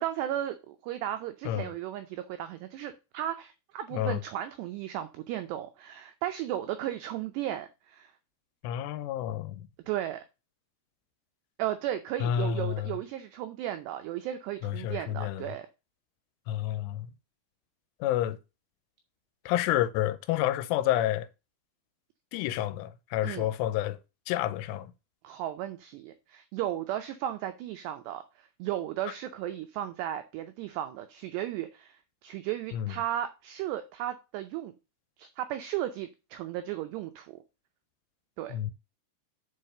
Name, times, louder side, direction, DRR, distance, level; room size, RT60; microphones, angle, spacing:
voice 1, 0.0-8.1 9.9-10.2 11.6-15.7 23.2-23.5 25.2-32.0 32.2-34.7 35.2-37.4 38.4-38.6, right 12 dB, 90° right, 2.4 m, -35 dB
voice 2, 8.6-9.7 12.2-12.9 14.6-15.5 16.5-17.1 18.0-18.4 19.5-21.3 22.3-24.0 24.3-24.9 29.1-29.2 32.7-32.9 38.5-38.7, left 12 dB, 85° left, 3.1 m, -29 dB
7.4 x 5.0 x 6.5 m
omnidirectional pair, 5.7 m